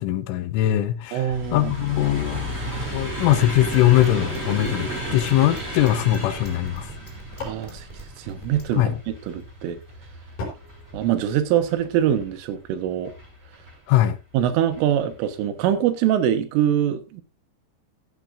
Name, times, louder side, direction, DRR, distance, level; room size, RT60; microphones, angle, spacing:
voice 1, 0.0-2.5 2.9-6.9 8.8-8.9 13.9-14.2, left 13 dB, 80° left, 3.4 m, -21 dB
voice 2, 1.1-1.7 7.4-7.9 8.2-9.8 10.9-13.1 14.3-17.2, right 10 dB, 80° right, 3.8 m, -23 dB
sound 1, 1.3-12.4 13.0-13.7 14.6-14.8 15.1-15.2, equal, 10° right, 5.7 m, -33 dB
sound 2, 3.4-8.7, right 1 dB, 10° left, 2.8 m, -42 dB
sound 3, 7.4-8.9 10.4-12.0, left 3 dB, 45° left, 5.6 m, -41 dB
15.5 x 11.5 x 2.6 m
omnidirectional pair, 5.8 m